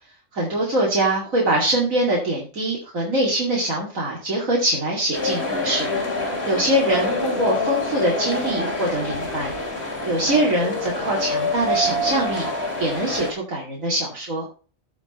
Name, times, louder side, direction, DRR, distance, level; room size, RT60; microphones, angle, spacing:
voice 1, 0.3-5.9 6.4-9.5 10.0-12.5 12.8-14.4, right 1 dB, 75° right, -3 dB, 2.9 m, -23 dB
sound 1, 5.1-13.3, left 2 dB, 50° left, 3.2 m, -26 dB
15.5 x 5.2 x 4.3 m, 0.37 s
omnidirectional pair, 1.4 m